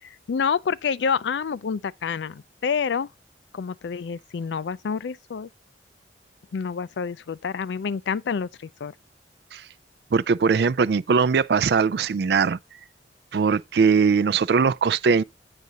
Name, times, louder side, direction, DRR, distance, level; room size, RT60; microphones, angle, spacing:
voice 1, 0.0-3.1 3.5-5.5 6.5-8.9, left 6 dB, 75° left, 0.4 m, -28 dB
voice 2, 10.1-12.6 13.3-15.2, right 5 dB, 65° right, 0.4 m, -20 dB
9.5 x 5.0 x 4.0 m
head